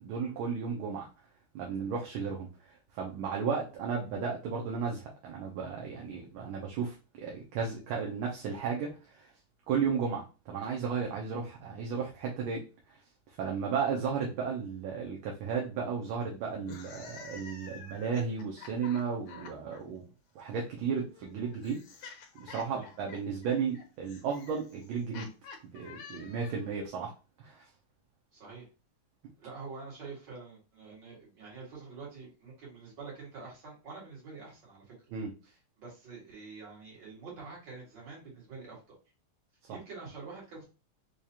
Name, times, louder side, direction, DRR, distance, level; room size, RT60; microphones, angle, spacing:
voice 1, 0.0-1.1 1.5-9.3 9.7-13.0 13.4-20.0 20.3-21.8 22.4-25.3 25.7-27.1 27.4-27.7 35.1-35.3, right 6 dB, 75° right, -1 dB, 1.5 m, -34 dB
sound 1, 16.6-19.8 20.9-26.8, left 5 dB, 90° left, 1.6 m, -49 dB
voice 2, 28.3-28.7 29.4-34.8 35.4-38.8 39.7-40.6, right 4 dB, 55° right, -4 dB, 2.4 m, -46 dB
4.8 x 2.4 x 2.8 m, 0.32 s
omnidirectional pair, 2.4 m